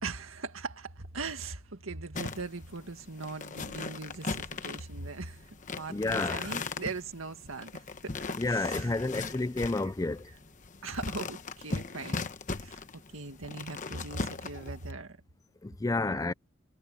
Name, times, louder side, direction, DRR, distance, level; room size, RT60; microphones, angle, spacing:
voice 1, 0.0-5.4 5.7-8.1 8.5-9.0 10.8-12.8 13.1-15.2 16.0-16.3, right 3 dB, 80° right, 1.9 m, -40 dB
sound 1, 2.1-14.9, left 3 dB, 40° left, 1.1 m, -38 dB
voice 2, 5.9-6.4 8.4-10.3 15.6-16.3, left 2 dB, 15° left, 0.4 m, -30 dB
head